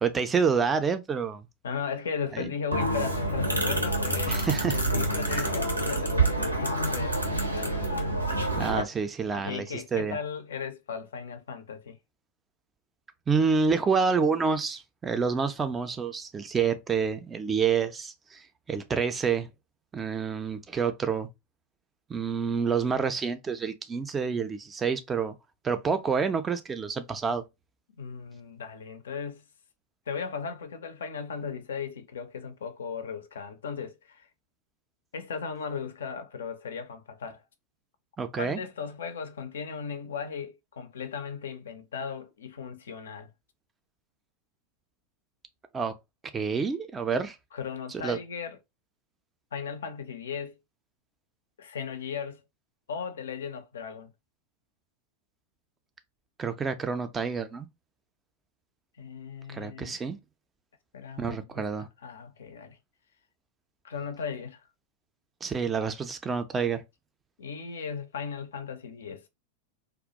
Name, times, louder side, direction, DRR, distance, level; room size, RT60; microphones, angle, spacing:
voice 1, 0.0-1.5 2.3-2.5 4.3-4.8 5.3-5.5 8.5-9.7 9.9-10.2 13.3-19.5 19.9-21.3 22.1-25.3 25.6-27.4 38.2-38.6 45.7-45.9 46.3-47.4 47.9-48.2 56.4-57.7 59.5-60.2 61.2-61.9 65.4-66.8, right 5 dB, 20° right, 0.3 m, -28 dB
voice 2, 1.6-4.4 4.7-7.2 7.5-8.0 9.3-12.0 28.0-29.4 30.1-34.3 35.1-37.4 38.4-43.3 47.5-48.6 49.5-50.6 51.6-52.4 52.9-54.1 59.0-60.0 60.9-62.8 63.8-64.6 67.4-69.2, left 6 dB, 65° left, 0.4 m, -37 dB
sound 1, 2.7-8.8, right 2 dB, 85° right, 0.6 m, -27 dB
2.3 x 2.0 x 2.7 m
figure-of-eight pair, 90°, 0 cm